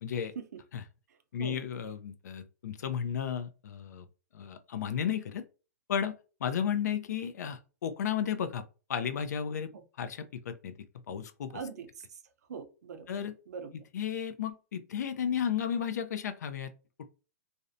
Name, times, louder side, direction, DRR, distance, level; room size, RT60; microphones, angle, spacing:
voice 1, 0.0-0.3 0.7-0.8 1.3-4.1 4.3-5.5 5.9-8.6 8.9-9.7 10.0-10.7 11.1-11.6 13.1-13.3 13.9-16.7, left 8 dB, 80° left, 0.4 m, -33 dB
voice 2, 11.5-12.2 12.5-13.1 13.5-13.7, right 6 dB, 75° right, 0.5 m, -41 dB
2.6 x 2.1 x 2.5 m
hypercardioid pair, 155°, 9 cm